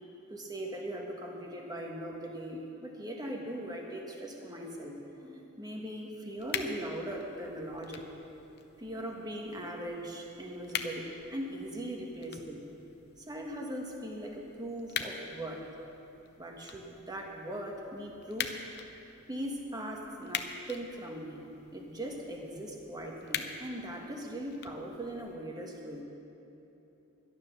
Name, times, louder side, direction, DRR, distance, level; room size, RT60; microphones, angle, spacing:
voice 1, 0.3-8.0 8.8-12.6 13.2-15.7 16.4-18.6 19.3-21.4 21.7-26.0, right 1 dB, 20° right, 0 dB, 1.6 m, -40 dB
sound 1, 6.4-25.4, left 7 dB, 50° left, 0.7 m, -44 dB
12.5 x 11.0 x 6.6 m, 3.0 s
head